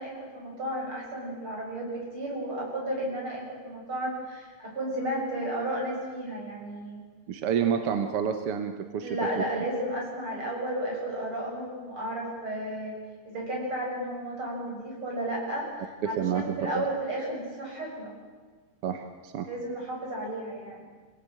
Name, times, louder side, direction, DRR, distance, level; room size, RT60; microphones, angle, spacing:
voice 1, 0.0-7.0 7.5-7.8 9.0-12.9 13.3-15.7 16.0-18.1 19.5-20.8, right 1 dB, 40° right, -2 dB, 8.0 m, -33 dB
voice 2, 7.3-9.1 9.4-9.5 16.0-16.9 18.8-19.5, right 8 dB, 60° right, 7 dB, 1.7 m, -29 dB
26.5 x 18.0 x 9.0 m, 1.4 s
omnidirectional pair, 3.5 m